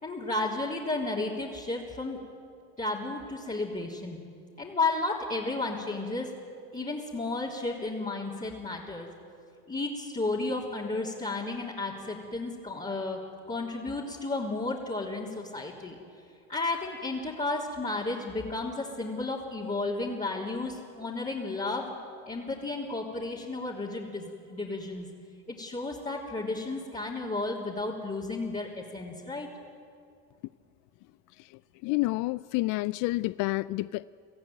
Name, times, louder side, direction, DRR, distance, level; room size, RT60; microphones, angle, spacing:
voice 1, 0.0-2.2 2.8-4.2 4.6-6.3 6.7-9.1 9.7-13.2 13.5-16.0 16.5-21.9 22.3-25.1 25.5-29.5, left 2 dB, 15° left, -6 dB, 3.6 m, -33 dB
voice 2, 31.8-34.0, left 21 dB, 45° left, 18 dB, 0.4 m, -29 dB
24.5 x 15.0 x 9.4 m, 2.4 s
hypercardioid pair, 80°, 47 cm